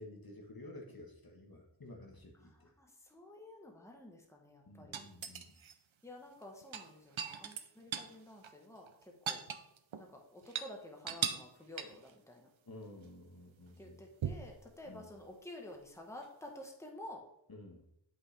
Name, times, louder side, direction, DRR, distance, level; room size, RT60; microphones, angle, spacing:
voice 1, 0.0-2.7 4.6-5.5 12.6-14.0 14.8-15.1 17.5-17.8, left 1 dB, 50° left, 1 dB, 1.3 m, -52 dB
voice 2, 2.4-5.0 6.0-9.4 10.0-12.5 13.8-17.2, left 1 dB, 5° left, 1 dB, 1.3 m, -51 dB
sound 1, 4.9-5.7 6.6-8.1 8.4-8.5 8.9-10.1 10.4-10.7 11.1-11.5 11.8-12.1 14.2-14.6 16.2-16.3, right 8 dB, 85° right, 0.7 m, -39 dB
8.2 x 5.6 x 3.4 m, 0.81 s
wide cardioid pair, 55°, 46 cm